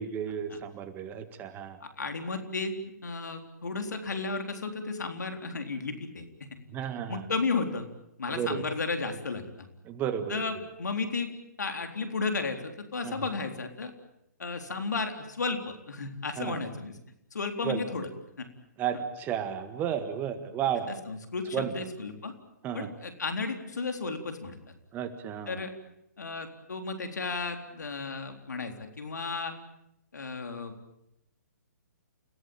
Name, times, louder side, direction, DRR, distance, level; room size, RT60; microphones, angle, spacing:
voice 1, 0.0-1.8 6.7-7.3 8.3-8.6 9.9-10.4 13.0-13.1 16.4-16.6 17.6-17.8 18.8-20.9 21.5-21.7 22.6-22.9 24.9-25.6, right 9 dB, 20° right, 10 dB, 1.8 m, -33 dB
voice 2, 1.8-6.5 7.1-7.9 8.2-9.7 10.3-11.3 11.6-13.9 14.4-17.0 17.3-18.1 18.4-18.5 20.9-22.3 22.7-24.6 25.5-25.7 26.2-29.6 30.1-30.7, left 4 dB, 70° left, 6 dB, 3.9 m, -33 dB
29.5 x 17.0 x 8.9 m, 0.81 s
figure-of-eight pair, 135°, 10 cm